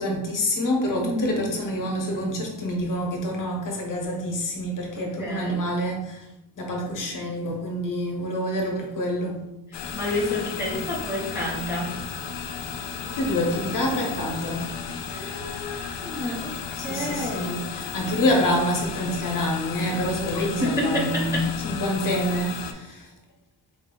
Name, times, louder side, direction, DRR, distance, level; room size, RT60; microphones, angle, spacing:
voice 1, 0.0-6.3 6.6-9.4 10.5-10.9 13.0-14.7 16.7-23.1, left 1 dB, 45° left, 0 dB, 0.9 m, -27 dB
voice 2, 1.0-1.4 4.9-5.6 9.7-12.0 15.1-17.6 18.1-18.2 20.6-21.5, left 1 dB, 5° right, -5 dB, 0.5 m, -30 dB
sound 1, 9.7-22.7, left 7 dB, 70° left, 0.6 m, -34 dB
4.5 x 2.6 x 3.7 m, 0.96 s
wide cardioid pair, 175°, 45 cm